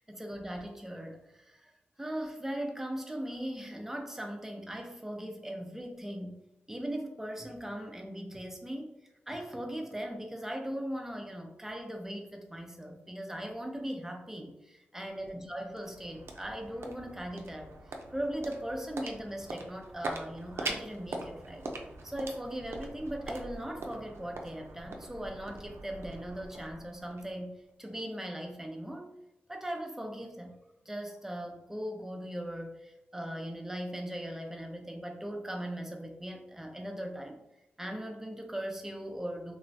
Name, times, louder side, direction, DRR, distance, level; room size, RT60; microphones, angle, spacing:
voice 1, 0.0-1.7 2.0-6.4 6.7-8.9 9.3-17.7 18.1-21.7 22.0-29.1 29.5-30.6 30.9-37.4 37.8-39.6, right 1 dB, 10° right, 2 dB, 0.4 m, -39 dB
sound 1, 15.3-27.7, right 2 dB, 75° right, 0.4 m, -43 dB
3.0 x 2.0 x 2.6 m, 0.90 s
wide cardioid pair, 90°, 4 cm